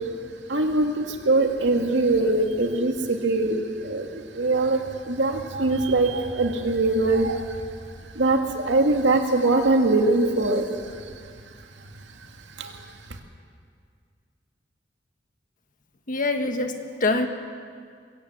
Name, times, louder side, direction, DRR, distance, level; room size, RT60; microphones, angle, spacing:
voice 1, 0.5-7.6 8.1-11.1 12.6-12.9, right 2 dB, 90° right, 3 dB, 2.3 m, -22 dB
voice 2, 16.1-17.3, left 2 dB, 50° left, 6 dB, 1.6 m, -24 dB
22.5 x 17.0 x 8.0 m, 2.1 s
head